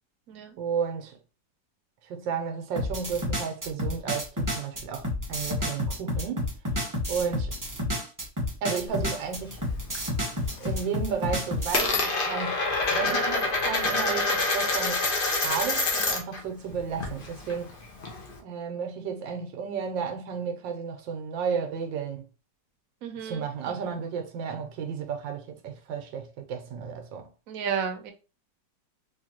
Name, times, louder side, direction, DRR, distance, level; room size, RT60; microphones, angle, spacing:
voice 1, 0.6-1.2 2.0-6.5 7.1-7.5 8.6-9.6 10.6-15.1 15.4-17.7 18.4-22.3 23.2-27.3, right 6 dB, 85° right, 1.4 m, -33 dB
sound 1, 2.8-11.9, left 1 dB, 25° right, 0.4 m, -30 dB
Coin (dropping), 8.9-10.0 10.3-10.8 11.1-16.4 16.7-18.4, left 3 dB, 45° left, 0.7 m, -27 dB
voice 2, 23.0-23.4 27.5-28.1, right 7 dB, 60° right, 1.0 m, -32 dB
3.8 x 2.6 x 2.8 m
omnidirectional pair, 2.0 m